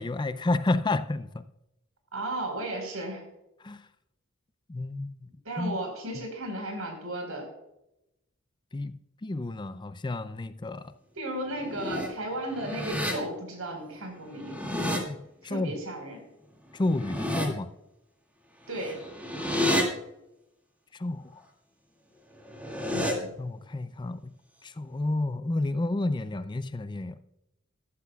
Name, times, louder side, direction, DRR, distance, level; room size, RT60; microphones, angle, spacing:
voice 1, 0.0-1.5 3.6-3.9 4.7-5.3 5.6-5.8 6.1-6.2 8.7-10.9 14.7-15.8 16.7-17.7 20.9-21.4 23.4-24.4 24.6-27.2, left 2 dB, 20° left, 0.5 m, -31 dB
voice 2, 2.1-3.2 5.4-7.5 11.1-14.6 15.4-16.2 18.7-19.0 22.9-23.3, right 1 dB, 85° right, 4.5 m, -34 dB
sound 1, 11.5-12.1 12.5-13.1 14.3-15.0 16.8-17.5 18.7-19.8 22.4-23.1, left 1 dB, 5° right, 2.2 m, -30 dB
14.5 x 12.0 x 2.3 m
head